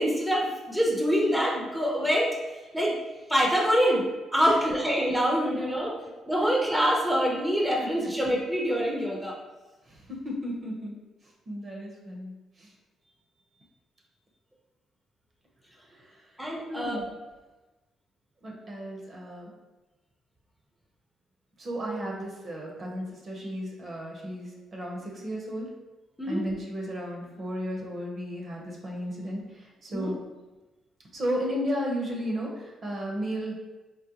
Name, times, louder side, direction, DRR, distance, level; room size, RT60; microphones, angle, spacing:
voice 1, 0.0-2.3 2.7-2.9 3.3-4.0 4.3-5.9 6.3-9.4 16.4-17.0 26.2-26.4 29.9-30.1, equal, ahead, -2 dB, 0.6 m, -25 dB
voice 2, 9.9-10.9 11.5-12.7 16.1-16.2 16.7-17.1 18.4-19.5 21.6-25.7 26.3-30.2 31.1-33.5, equal, 45° right, -1 dB, 0.7 m, -34 dB
3.8 x 2.1 x 2.8 m, 1.1 s
cardioid pair, 90°, 0 cm